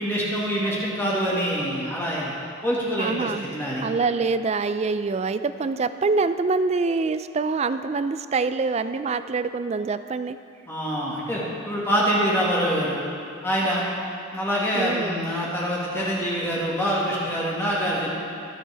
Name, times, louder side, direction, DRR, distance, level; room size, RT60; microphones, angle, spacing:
voice 1, 0.0-2.3 2.6-3.9 10.7-13.0 13.4-13.8 14.3-18.1, equal, 10° left, -6 dB, 1.8 m, -25 dB
voice 2, 3.0-3.5 3.8-10.4 14.8-15.2, right 4 dB, 30° right, 11 dB, 0.3 m, -25 dB
21.5 x 7.5 x 3.4 m, 2.4 s
head